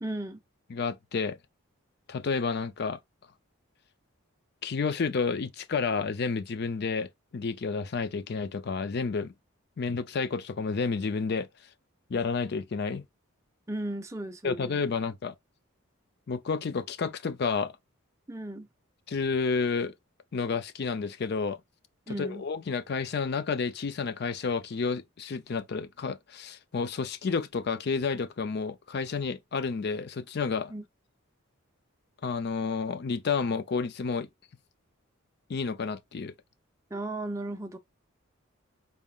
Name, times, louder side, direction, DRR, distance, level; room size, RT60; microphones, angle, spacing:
voice 1, 0.0-0.4 13.7-14.9 18.3-18.7 22.1-22.5 30.7-30.8 36.9-37.8, right 1 dB, 15° right, 0.5 m, -35 dB
voice 2, 0.7-1.4 2.1-3.0 4.6-9.3 9.8-11.5 12.1-13.0 14.4-15.3 16.3-17.7 19.1-19.9 20.3-21.6 22.1-30.7 32.2-34.3 35.5-36.3, left 4 dB, 50° left, 0.4 m, -30 dB
4.1 x 3.6 x 2.3 m
head